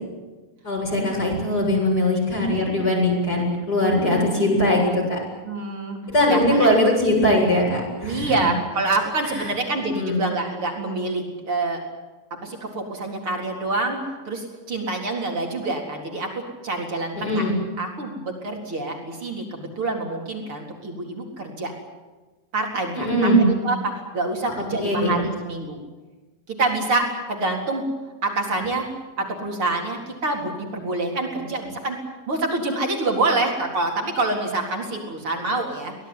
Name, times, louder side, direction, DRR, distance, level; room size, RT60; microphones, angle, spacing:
voice 1, 0.6-5.2 6.1-8.3 9.9-10.2 17.1-17.5 22.9-23.4 24.8-25.1, left 1 dB, 25° left, -1 dB, 8.5 m, -20 dB
voice 2, 5.4-6.0 6.3-6.7 8.0-11.8 12.4-14.0 14.3-17.5 17.8-21.7 22.5-25.8 26.5-27.8 28.2-28.8 29.2-32.0 32.3-35.9, right 2 dB, 35° right, 1 dB, 4.6 m, -26 dB
24.5 x 18.0 x 9.7 m, 1.2 s
omnidirectional pair, 4.4 m